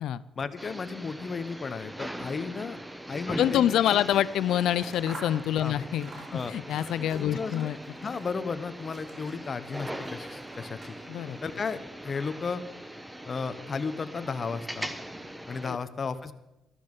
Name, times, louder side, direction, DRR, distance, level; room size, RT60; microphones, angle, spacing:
voice 1, 0.3-2.8 3.1-3.6 5.6-5.8 6.3-6.5 7.1-7.7 7.9-10.9 11.4-12.6 13.2-14.9 15.5-16.3, left 5 dB, 40° left, 11 dB, 1.0 m, -34 dB
sound 1, 0.6-15.8, right 1 dB, 5° right, 1.0 m, -41 dB
voice 2, 3.4-7.8 11.1-11.4 15.6-15.8, left 11 dB, 80° left, 17 dB, 0.5 m, -26 dB
Scissors, 4.0-8.5 8.8-11.3, right 2 dB, 50° right, 2.6 m, -49 dB
13.0 x 13.0 x 5.4 m, 0.94 s
cardioid pair, 90°, 0 cm